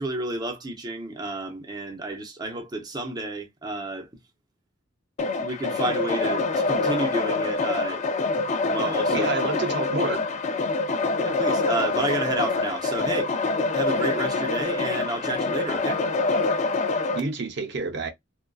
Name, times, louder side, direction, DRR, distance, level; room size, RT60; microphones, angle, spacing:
voice 1, 0.0-4.1 5.4-8.0 8.4-9.3 11.2-13.3 13.7-16.0, right 2 dB, 20° right, 0.6 m, -31 dB
sound 1, 5.2-17.2, left 3 dB, 35° left, 0.3 m, -25 dB
voice 2, 9.1-10.3 17.1-18.1, right 3 dB, 60° right, 0.6 m, -28 dB
2.5 x 2.2 x 2.2 m
head